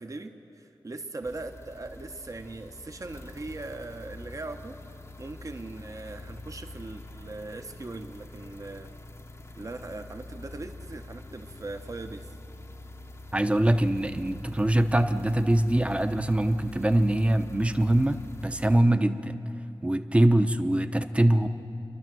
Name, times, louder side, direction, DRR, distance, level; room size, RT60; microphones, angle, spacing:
voice 1, 0.0-4.8 5.2-8.9 9.6-12.3, right 2 dB, 40° right, 5 dB, 1.0 m, -40 dB
sound 1, 1.2-18.8, left 2 dB, 35° left, 0.9 m, -45 dB
voice 2, 13.3-19.4 19.8-21.5, right 1 dB, 15° right, 9 dB, 0.8 m, -23 dB
29.0 x 12.0 x 7.7 m, 3.0 s
wide cardioid pair, 90°, 8 cm